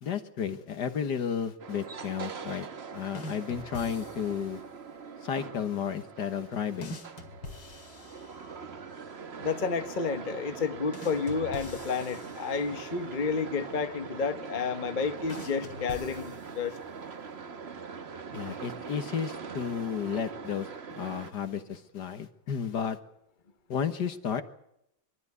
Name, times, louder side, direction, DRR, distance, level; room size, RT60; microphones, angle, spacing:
voice 1, 0.0-2.7 2.9-4.6 5.2-7.0 18.3-23.0 23.7-24.4, left 7 dB, 55° left, 9 dB, 1.8 m, -33 dB
sound 1, 1.6-21.3, right 5 dB, 40° right, 1.1 m, -42 dB
sound 2, 3.1-4.6 6.8-8.8 10.9-13.1 15.3-16.9, left 2 dB, 75° left, 3.0 m, -45 dB
voice 2, 9.4-16.8, left 5 dB, 30° left, 8 dB, 0.9 m, -31 dB
24.0 x 13.0 x 9.6 m, 0.77 s
omnidirectional pair, 2.2 m